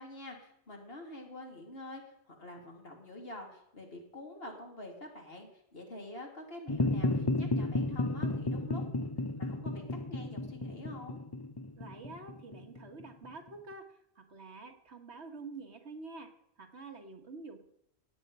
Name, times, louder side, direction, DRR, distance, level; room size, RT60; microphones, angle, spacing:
voice 1, 0.0-2.0 2.3-9.1 9.3-11.2, left 1 dB, 60° left, 1 dB, 2.9 m, -47 dB
sound 1, 6.7-13.3, left 2 dB, 25° left, 0.8 m, -33 dB
voice 2, 11.8-16.3 16.6-17.6, right 3 dB, 70° right, 5 dB, 1.9 m, -47 dB
16.5 x 9.2 x 5.5 m, 0.76 s
omnidirectional pair, 1.2 m